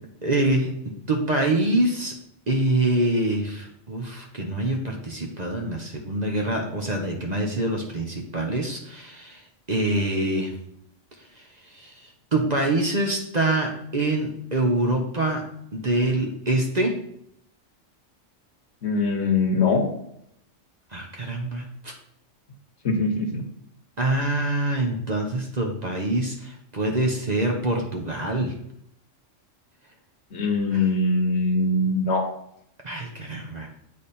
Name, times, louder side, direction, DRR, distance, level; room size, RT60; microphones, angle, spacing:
voice 1, 0.2-0.7 1.1-2.1 2.5-9.4 9.7-10.5 11.7-11.9 12.3-15.4 15.7-17.0 20.9-21.9 24.0-28.5 30.7-30.9 32.8-33.8, right 2 dB, 40° right, 1 dB, 0.8 m, -25 dB
voice 2, 18.8-19.8 22.8-23.4 30.3-32.3, left 3 dB, 60° left, 4 dB, 1.2 m, -22 dB
8.6 x 3.4 x 4.2 m, 0.74 s
omnidirectional pair, 1.3 m